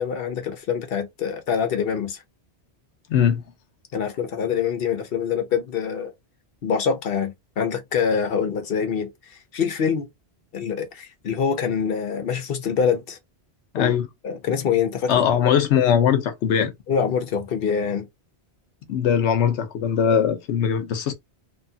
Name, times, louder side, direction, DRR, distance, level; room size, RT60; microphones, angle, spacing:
voice 1, 0.0-2.2 3.9-6.1 6.6-10.1 10.5-13.2 13.8-13.9 14.2-15.2 16.9-18.1, left 7 dB, 60° left, 0.8 m, -25 dB
voice 2, 3.1-3.4 13.7-14.1 15.1-16.7 18.9-21.1, left 8 dB, 90° left, 1.0 m, -20 dB
3.1 x 2.3 x 2.7 m
omnidirectional pair, 1.1 m